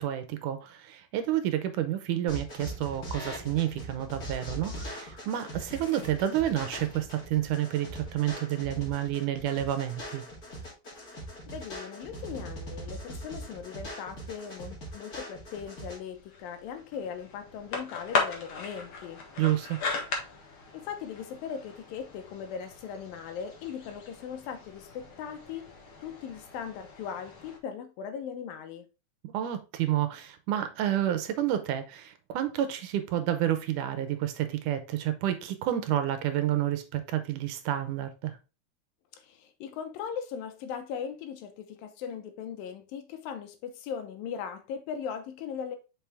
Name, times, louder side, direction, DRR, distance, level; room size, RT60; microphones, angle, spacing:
voice 1, 0.0-10.2 19.4-19.8 29.3-38.4, right 12 dB, 75° right, 2.1 m, -29 dB
sound 1, 2.3-16.0, right 1 dB, 30° left, 2.8 m, -41 dB
voice 2, 11.5-19.2 20.7-25.7 26.0-28.9 39.1-45.8, left 7 dB, 85° left, 2.7 m, -39 dB
sound 2, 15.4-27.6, left 4 dB, 50° left, 1.8 m, -38 dB
5.9 x 5.4 x 3.4 m
omnidirectional pair, 4.0 m